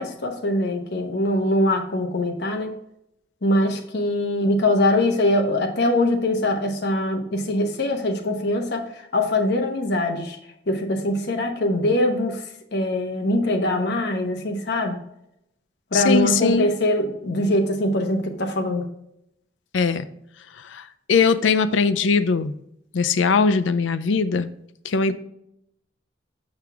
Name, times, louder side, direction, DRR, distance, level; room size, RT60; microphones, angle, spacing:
voice 1, 0.0-2.7 3.4-10.4 10.7-12.4 12.7-14.9 15.9-18.8, left 1 dB, 60° left, 3 dB, 1.0 m, -22 dB
voice 2, 15.9-16.7 19.7-20.1 20.6-22.5 22.9-24.5 24.8-25.1, left 5 dB, 75° left, 12 dB, 0.5 m, -20 dB
6.7 x 5.9 x 3.4 m, 0.79 s
head